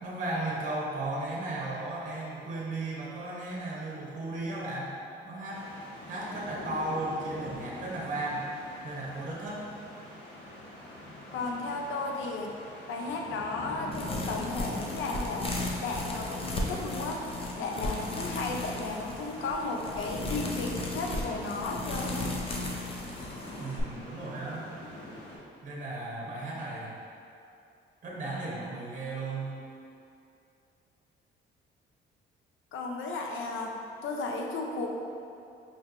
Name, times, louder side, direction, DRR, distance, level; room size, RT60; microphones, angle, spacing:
voice 1, 0.0-4.9 5.2-5.6 6.1-8.5 8.8-9.6 23.6-24.7 25.6-26.9 28.0-29.5, right 2 dB, 40° right, -5 dB, 0.9 m, -35 dB
sound 1, 5.5-25.4, left 1 dB, 60° left, 0.9 m, -44 dB
voice 2, 11.3-12.5 12.9-15.5 15.8-17.2 17.6-22.3 32.7-34.9, left 3 dB, 80° left, 1 dB, 0.5 m, -34 dB
sound 2, 13.9-23.8, left 2 dB, 30° left, 0.5 m, -35 dB
5.1 x 2.6 x 2.5 m, 2.6 s
cardioid pair, 90°, 20 cm